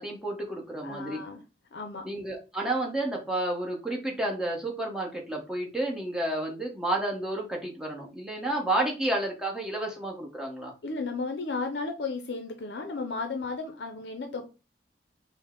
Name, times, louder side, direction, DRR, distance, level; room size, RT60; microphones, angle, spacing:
voice 1, 0.0-1.2 2.0-10.7, right 1 dB, 5° right, -1 dB, 1.0 m, -31 dB
voice 2, 0.8-1.4 1.7-2.0 10.8-14.4, left 3 dB, 70° left, 5 dB, 0.5 m, -34 dB
5.2 x 2.1 x 3.6 m, 0.31 s
head